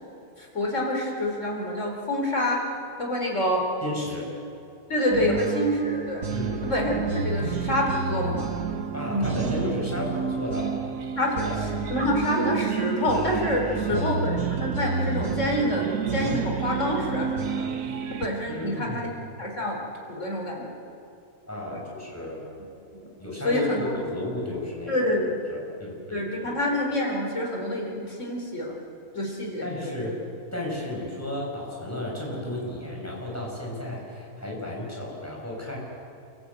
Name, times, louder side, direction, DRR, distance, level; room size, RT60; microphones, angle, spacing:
voice 1, 0.4-2.6 3.0-3.6 4.9-6.2 6.6-8.5 9.1-9.3 11.2-11.5 11.9-17.7 18.1-19.1 19.4-19.8 20.1-20.7 21.7-21.8 22.9-23.1 23.4-24.0 24.9-25.3 26.1-28.7 29.1-30.2, left 1 dB, 55° left, 0 dB, 4.3 m, -27 dB
voice 2, 3.8-4.3 6.3-6.6 8.9-10.8 11.4-11.5 13.7-14.1 18.5-19.1 21.5-22.4 23.2-25.1 25.5-26.5 29.6-30.1 30.5-35.8, left 1 dB, 10° left, -3 dB, 6.4 m, -33 dB
sound 1, 5.1-18.3, right 6 dB, 75° right, 1.6 m, -29 dB
30.0 x 14.0 x 8.3 m, 2.5 s
omnidirectional pair, 1.6 m